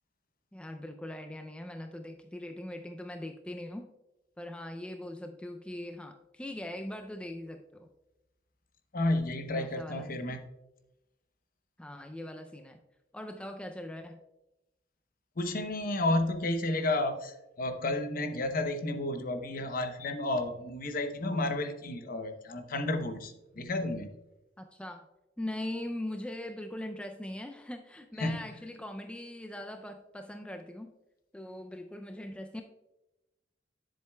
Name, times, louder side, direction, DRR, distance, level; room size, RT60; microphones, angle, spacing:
voice 1, 0.5-3.9 4.4-7.9 9.5-10.4 11.8-12.8 13.1-14.2 24.6-25.1 25.4-30.9 31.3-32.6, left 1 dB, 5° left, 5 dB, 0.4 m, -41 dB
voice 2, 8.9-10.5 15.4-24.1 28.2-28.5, left 2 dB, 50° left, 7 dB, 0.8 m, -31 dB
10.5 x 7.5 x 2.3 m, 0.99 s
head